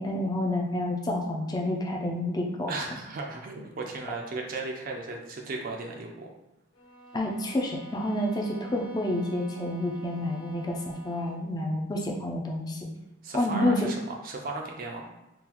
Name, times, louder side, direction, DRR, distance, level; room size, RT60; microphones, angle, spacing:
voice 1, 0.0-2.7 7.1-12.9 13.3-13.9, left 1 dB, 20° left, 0 dB, 0.4 m, -29 dB
voice 2, 2.7-6.3 13.2-15.1, right 3 dB, 45° right, 1 dB, 0.4 m, -36 dB
sound 1, 6.7-11.5, right 3 dB, 75° left, 0.5 m, -48 dB
3.8 x 2.4 x 2.9 m, 0.94 s
head